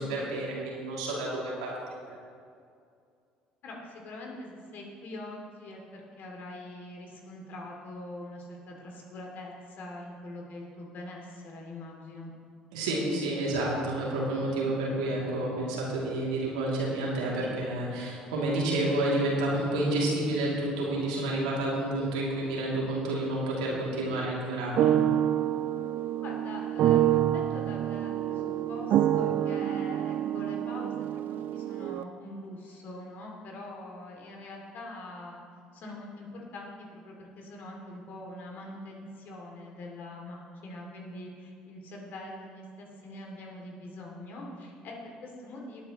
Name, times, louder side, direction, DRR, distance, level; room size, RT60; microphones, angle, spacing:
voice 1, 0.0-1.7 12.7-25.0, right 1 dB, 75° right, -4 dB, 2.7 m, -29 dB
voice 2, 3.6-12.3 23.7-23.8 26.2-35.4 35.7-45.9, left 1 dB, 55° left, 0 dB, 2.7 m, -43 dB
sound 1, 24.5-32.0, right 11 dB, 55° right, 0.4 m, -27 dB
18.5 x 9.1 x 3.1 m, 2.3 s
hypercardioid pair, 55°, 4 cm